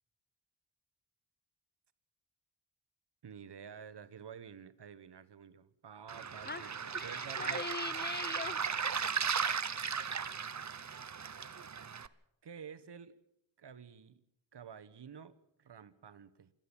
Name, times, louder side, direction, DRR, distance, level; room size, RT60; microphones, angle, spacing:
voice 1, 3.2-7.6 12.4-13.1 13.6-14.2 14.5-16.5, right 7 dB, 60° right, 14 dB, 1.4 m, -51 dB
Waves surf, 6.1-12.1, right 6 dB, 40° right, 0.9 m, -36 dB
voice 2, 6.4-9.1 10.6-10.9, left 4 dB, 25° left, 20 dB, 0.8 m, -43 dB
28.0 x 10.5 x 8.9 m, 0.79 s
cardioid pair, 65°, 45 cm